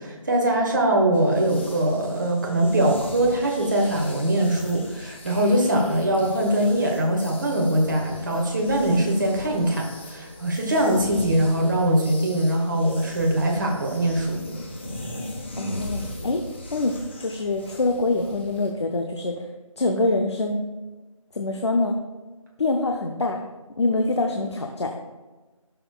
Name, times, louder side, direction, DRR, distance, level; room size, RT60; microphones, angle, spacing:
voice 1, 0.0-14.4, right 1 dB, 35° right, 0 dB, 1.4 m, -22 dB
sound 1, 1.1-18.7, left 1 dB, 20° left, 0.8 m, -39 dB
voice 2, 15.6-16.4 16.7-19.3 19.8-20.7 21.3-22.0 22.6-23.4 23.8-24.9, left 2 dB, 50° left, 3 dB, 0.7 m, -25 dB
13.0 x 6.7 x 2.3 m, 1.2 s
figure-of-eight pair, 165°, 18 cm